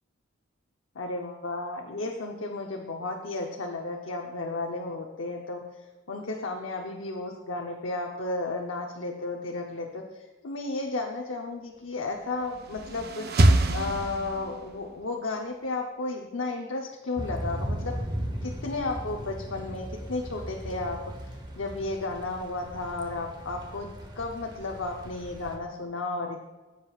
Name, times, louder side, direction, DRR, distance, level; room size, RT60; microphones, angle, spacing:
voice 1, 0.9-5.6 6.1-13.3 13.7-18.0 18.4-26.4, left 2 dB, 75° left, 1 dB, 0.8 m, -33 dB
sound 1, 12.4-14.8, right 1 dB, 50° right, 0.6 m, -24 dB
Thunder / Rain, 17.2-25.6, equal, 20° right, 1.0 m, -37 dB
15.0 x 7.6 x 2.4 m, 1.2 s
head